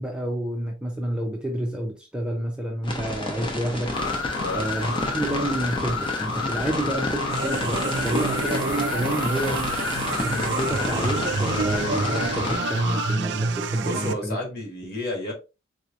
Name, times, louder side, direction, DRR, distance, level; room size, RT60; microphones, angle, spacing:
voice 1, 0.0-3.9 4.6-9.7 10.2-14.4, right 1 dB, 5° right, 0.6 m, -29 dB
sound 1, 2.8-12.6, left 2 dB, 25° left, 0.8 m, -31 dB
sound 2, 3.9-13.2, left 4 dB, 80° left, 0.5 m, -31 dB
sound 3, 7.3-14.1, right 5 dB, 60° right, 0.4 m, -29 dB
voice 2, 13.8-15.3, left 2 dB, 50° left, 1.5 m, -31 dB
4.1 x 3.1 x 2.4 m
head